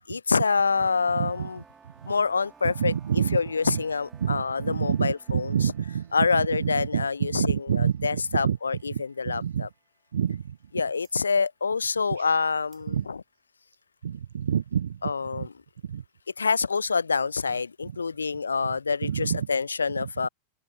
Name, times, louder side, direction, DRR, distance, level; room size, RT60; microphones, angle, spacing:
voice 1, 0.1-1.6 2.1-2.9 3.3-5.5 6.1-7.3 7.8-8.8 9.2-9.7 10.8-12.9 15.0-15.5 16.4-20.3, left 5 dB, 75° left, 0.3 m, -26 dB
sound 1, 0.5-9.2, right 6 dB, 15° right, 2.7 m, -56 dB
voice 2, 1.1-1.5 1.8-2.1 2.6-3.8 4.2-9.7 10.1-10.7 12.1-12.3 12.9-13.1 14.0-15.5 15.8-16.0 17.8-18.0 18.6-18.8 19.0-19.5 20.0-20.3, right 8 dB, 65° right, 0.5 m, -29 dB
sound 2, 11.0-16.1, right 13 dB, 30° right, 6.6 m, -70 dB
open air
figure-of-eight pair, 90°, 0 cm